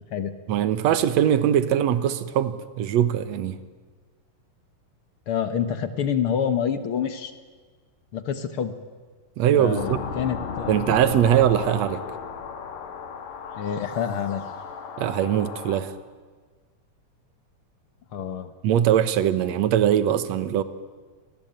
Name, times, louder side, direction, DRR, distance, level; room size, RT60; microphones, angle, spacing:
voice 1, 0.5-3.6 9.4-10.0 10.7-12.0 15.0-15.9 18.6-20.6, right 10 dB, 65° right, 13 dB, 2.1 m, -21 dB
voice 2, 5.3-7.3 8.1-8.7 9.5-11.0 13.5-14.4 18.1-18.5, left 8 dB, 60° left, 10 dB, 1.6 m, -27 dB
sound 1, 9.8-15.8, left 6 dB, 75° left, 3.6 m, -35 dB
27.0 x 19.0 x 9.0 m, 1.5 s
omnidirectional pair, 3.9 m